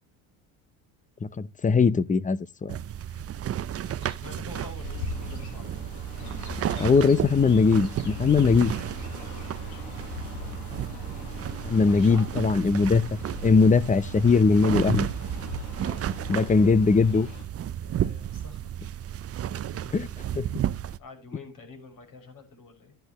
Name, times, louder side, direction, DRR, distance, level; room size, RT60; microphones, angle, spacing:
voice 1, 1.2-2.8 6.8-8.7 11.6-13.0 13.4-15.1 16.3-17.3 19.9-20.1 20.3-20.5, left 4 dB, 20° left, 0.7 m, -20 dB
sound 1, 2.7-21.0, right 10 dB, 35° right, 0.6 m, -33 dB
voice 2, 3.8-5.8 6.5-6.9 9.2-9.8 11.8-12.3 15.8-16.1 17.6-18.6 19.5-20.0 21.0-22.9, left 4 dB, 55° left, 6.3 m, -47 dB
Chirp tweet, 4.8-17.4, left 3 dB, 70° left, 7.4 m, -40 dB
13.0 x 10.5 x 3.1 m
cardioid pair, 100°, 40 cm